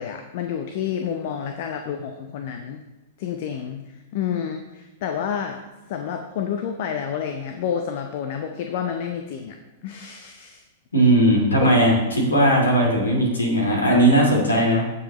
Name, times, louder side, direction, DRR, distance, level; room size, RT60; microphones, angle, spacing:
voice 1, 0.0-2.8 3.2-5.6 5.9-9.6 9.8-10.6 11.6-11.7, left 8 dB, 55° left, 6 dB, 0.7 m, -29 dB
voice 2, 10.9-14.9, right 1 dB, 80° left, -1 dB, 2.8 m, -18 dB
16.0 x 5.6 x 3.0 m, 1.1 s
figure-of-eight pair, 105°, 0 cm